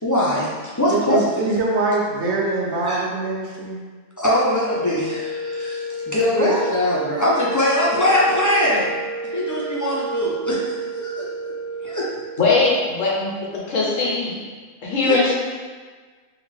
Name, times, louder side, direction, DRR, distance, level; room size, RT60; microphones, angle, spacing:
voice 1, 0.0-0.5 0.8-1.2 2.8-3.0 4.2-8.9 9.3-11.5 11.8-12.0 15.0-15.2, left 1 dB, 25° left, -7 dB, 0.3 m, -22 dB
voice 2, 0.9-3.8 6.3-6.6, right 3 dB, 60° right, -2 dB, 1.0 m, -23 dB
sound 1, 4.5-12.7, right 2 dB, 50° left, 0.9 m, -31 dB
voice 3, 12.4-13.3 13.7-14.3 14.8-15.3, left 3 dB, 70° left, -5 dB, 1.3 m, -19 dB
3.5 x 3.3 x 3.6 m, 1.5 s
omnidirectional pair, 1.4 m